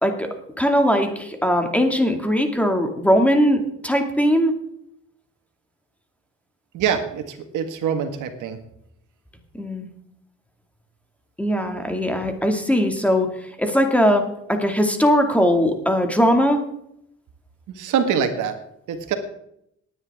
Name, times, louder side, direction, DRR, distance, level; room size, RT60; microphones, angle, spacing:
voice 1, 0.0-4.5 9.6-9.9 11.4-13.3 13.6-14.2 14.5-16.6, equal, 5° left, 4 dB, 2.2 m, -20 dB
voice 2, 6.7-8.6 17.7-18.5 18.9-19.1, right 7 dB, 85° right, 7 dB, 1.7 m, -24 dB
18.5 x 9.9 x 3.6 m, 0.75 s
cardioid pair, 90°, 30 cm